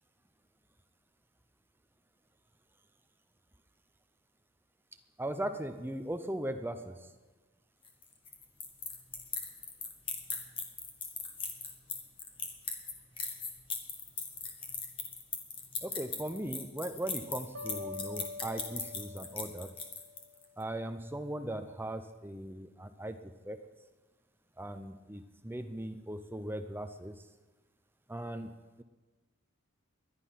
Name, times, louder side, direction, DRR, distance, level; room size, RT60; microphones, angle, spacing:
voice 1, 5.2-7.1 15.8-19.7 20.6-23.6 24.6-27.2 28.1-28.8, right 1 dB, 10° right, 8 dB, 0.7 m, -39 dB
sound 1, 7.8-20.4, left 5 dB, 25° left, 1.6 m, -39 dB
sound 2, 17.5-20.6, left 3 dB, 90° right, 1.4 m, -45 dB
20.5 x 11.0 x 5.8 m, 1.2 s
head